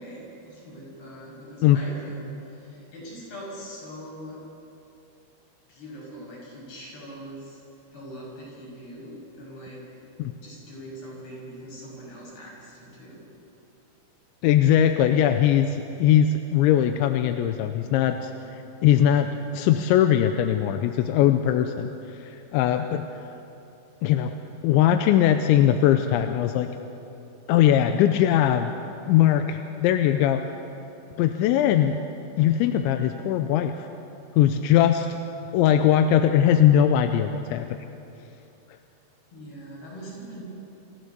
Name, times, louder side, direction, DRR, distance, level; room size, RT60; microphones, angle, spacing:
voice 1, 0.0-4.4 5.7-7.6 7.9-9.9 10.4-13.3 39.3-40.4, equal, 55° left, -4 dB, 8.2 m, -42 dB
voice 2, 14.4-18.3 18.8-21.9 22.2-23.1 24.0-24.3 24.6-26.7 27.5-28.7 29.1-30.4 31.2-32.0 32.4-33.9 34.4-35.2 35.5-37.7, left 10 dB, 80° left, 7 dB, 2.9 m, -20 dB
27.5 x 15.0 x 6.8 m, 2.8 s
omnidirectional pair, 5.5 m